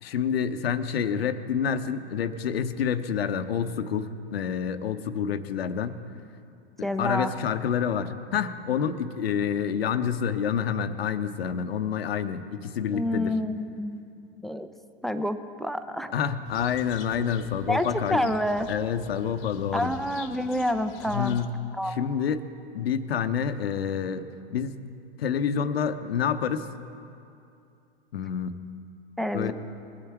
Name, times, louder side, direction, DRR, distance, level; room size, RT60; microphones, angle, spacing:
voice 1, 0.0-6.0 7.0-13.4 16.1-18.3 18.7-19.9 21.1-21.5 21.8-22.4 22.7-24.8 25.2-26.7 28.1-28.6 29.3-29.5, left 7 dB, 85° left, 9 dB, 0.8 m, -28 dB
voice 2, 6.8-7.3 12.9-14.7 15.0-16.1 17.7-18.7 19.7-21.4 21.8-22.0 29.2-29.5, left 1 dB, ahead, 9 dB, 0.5 m, -28 dB
sound 1, 16.4-21.5, left 8 dB, 50° left, 1.0 m, -47 dB
20.5 x 8.7 x 4.6 m, 2.6 s
hypercardioid pair, 105°, 29 cm